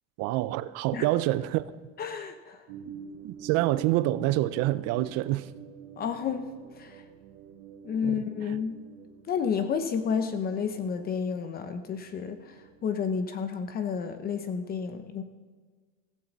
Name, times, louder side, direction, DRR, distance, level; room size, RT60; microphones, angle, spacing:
voice 1, 0.2-1.6 3.2-5.5 8.0-8.6, right 16 dB, 50° right, 0.6 m, -27 dB
voice 2, 2.0-2.6 6.0-6.5 6.8-7.0 7.8-8.8 9.3-12.5 12.8-15.2, left 6 dB, 30° left, 0.8 m, -31 dB
sound 1, 2.7-13.3, right 7 dB, 70° right, 1.4 m, -48 dB
15.5 x 15.5 x 4.1 m
cardioid pair, 155°, 32 cm